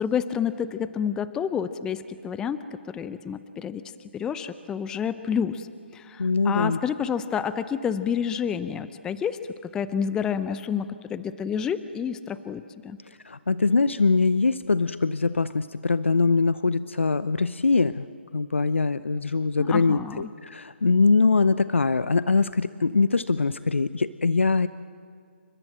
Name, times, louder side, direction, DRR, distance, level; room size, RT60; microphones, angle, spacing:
voice 1, 0.0-2.6 2.8-3.8 4.1-5.7 5.9-13.0 19.7-20.2, left 7 dB, 10° left, 13 dB, 0.6 m, -29 dB
voice 2, 6.2-6.8 13.1-18.1 18.3-24.7, left 4 dB, 75° left, 15 dB, 0.7 m, -23 dB
29.0 x 25.0 x 7.7 m, 2.2 s
figure-of-eight pair, 140°, 7 cm